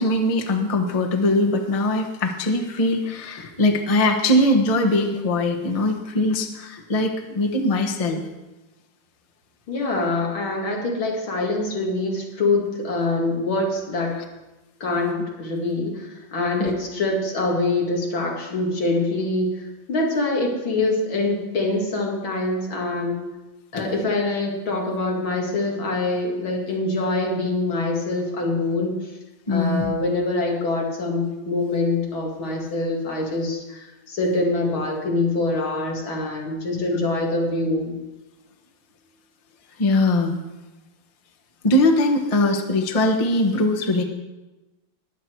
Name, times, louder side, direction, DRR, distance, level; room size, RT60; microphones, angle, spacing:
voice 1, 0.0-8.2 16.6-16.7 23.7-23.9 29.5-29.9 39.8-40.4 41.6-44.0, left 1 dB, 25° left, 3 dB, 1.0 m, -21 dB
voice 2, 9.7-14.1 14.8-23.2 23.7-28.9 29.5-37.9, left 2 dB, 85° left, -1 dB, 3.1 m, -24 dB
21.0 x 8.1 x 4.6 m, 1.1 s
omnidirectional pair, 2.2 m